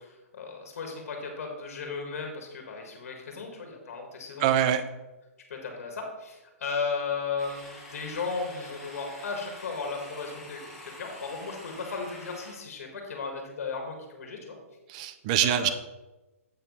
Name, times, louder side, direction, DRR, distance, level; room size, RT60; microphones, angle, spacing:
voice 1, 0.0-4.6 5.5-14.6 15.4-15.7, left 4 dB, 65° left, 2 dB, 1.8 m, -35 dB
voice 2, 4.4-4.8 14.9-15.7, right 10 dB, 30° right, 12 dB, 0.5 m, -24 dB
sound 1, 7.4-12.5, left 1 dB, ahead, 1.9 m, -46 dB
7.9 x 4.5 x 5.4 m, 1.1 s
hypercardioid pair, 160°, 8 cm